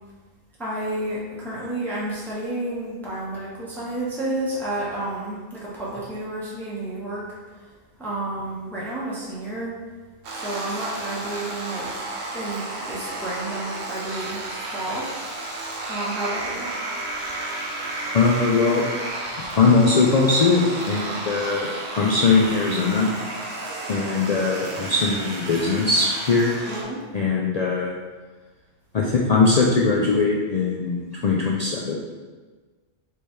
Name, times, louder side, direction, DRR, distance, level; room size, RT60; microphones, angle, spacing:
voice 1, 0.6-7.2 7.6-7.7 8.0-9.7 10.3-11.9 12.3-15.1 15.9-16.7 26.7-27.0, right 1 dB, ahead, -7 dB, 0.9 m, -30 dB
sound 1, 10.2-26.8, right 2 dB, 85° right, 1.2 m, -32 dB
voice 2, 18.1-18.8 19.6-21.7 22.0-23.1 23.9-26.5 27.1-27.9 28.9-32.0, left 4 dB, 70° left, -3 dB, 0.3 m, -20 dB
3.4 x 3.1 x 4.3 m, 1.3 s
omnidirectional pair, 1.3 m